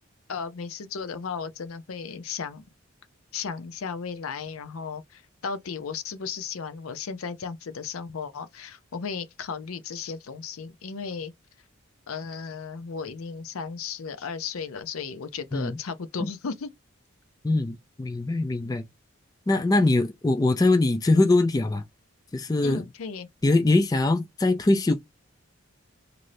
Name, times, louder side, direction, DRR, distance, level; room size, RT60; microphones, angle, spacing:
voice 1, 0.3-2.6 3.3-11.3 12.1-16.7 22.6-23.3, left 5 dB, 85° left, 0.6 m, -35 dB
voice 2, 17.4-18.8 19.5-21.8 22.3-22.8 23.4-25.0, left 2 dB, 20° left, 0.3 m, -22 dB
3.1 x 2.6 x 2.6 m
head